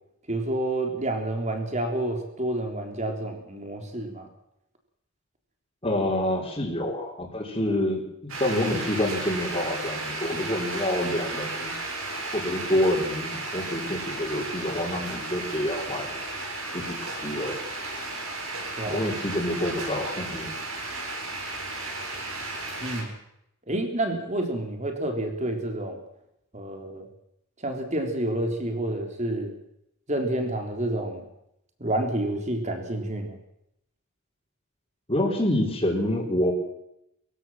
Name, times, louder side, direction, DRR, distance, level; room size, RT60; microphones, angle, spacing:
voice 1, 0.3-4.3 18.8-19.0 22.8-23.1 23.7-26.0 26.5-27.1 27.6-29.5 30.1-31.3 31.8-33.4, right 1 dB, 35° right, 4 dB, 3.8 m, -29 dB
voice 2, 5.8-11.8 12.3-16.2 16.7-17.6 18.9-20.5 35.1-36.5, left 1 dB, 25° left, -6 dB, 4.3 m, -27 dB
sound 1, 8.3-23.0, right 2 dB, 70° right, 6.6 m, -34 dB
23.5 x 16.0 x 7.5 m, 0.79 s
head